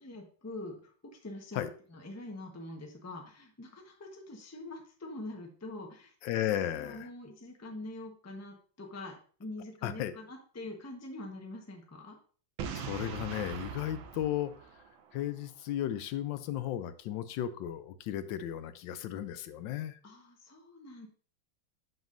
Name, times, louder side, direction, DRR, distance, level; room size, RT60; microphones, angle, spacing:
voice 1, 0.0-6.1 6.7-12.2 20.0-21.1, left 2 dB, 15° left, 2 dB, 0.7 m, -45 dB
voice 2, 6.2-7.1 9.8-10.1 12.7-14.5 15.1-20.0, left 11 dB, 75° left, 12 dB, 1.2 m, -35 dB
Boom, 12.6-15.4, right 7 dB, 80° right, 1.5 m, -41 dB
7.0 x 6.1 x 2.6 m, 0.42 s
omnidirectional pair, 2.2 m